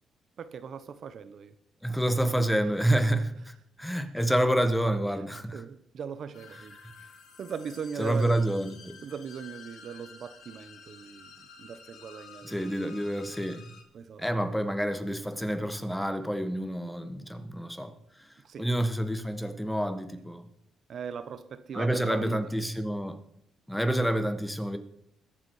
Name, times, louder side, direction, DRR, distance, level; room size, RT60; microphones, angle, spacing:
voice 1, 0.4-1.5 5.5-6.8 7.4-8.4 9.0-12.5 13.9-14.2 18.4-18.7 20.9-22.4, right 7 dB, 55° right, 0.8 m, -39 dB
voice 2, 1.8-5.6 6.6-6.9 8.0-9.0 12.4-13.7 14.2-17.9 18.2-18.3 18.6-20.5 21.7-23.2 23.7-24.8, right 1 dB, 5° left, 1.4 m, -28 dB
sound 1, 6.3-13.8, left 5 dB, 75° left, 3.3 m, -51 dB
21.5 x 7.3 x 4.8 m
cardioid pair, 90°, 0 cm